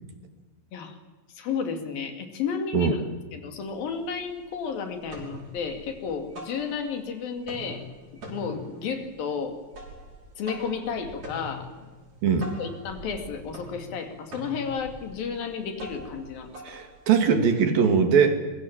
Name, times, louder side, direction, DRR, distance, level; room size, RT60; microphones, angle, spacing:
voice 1, 1.4-3.0 3.3-7.8 8.3-9.6 10.4-11.7 12.6-16.5, left 6 dB, 80° left, 6 dB, 4.3 m, -32 dB
sound 1, 3.6-3.7 4.0-4.6 4.9-7.1 7.4-17.5, right 1 dB, 50° right, 7.2 m, -44 dB
voice 2, 12.2-12.5 16.7-18.4, right 6 dB, 80° right, 6 dB, 4.4 m, -21 dB
25.5 x 23.0 x 7.4 m, 1.2 s
omnidirectional pair, 4.1 m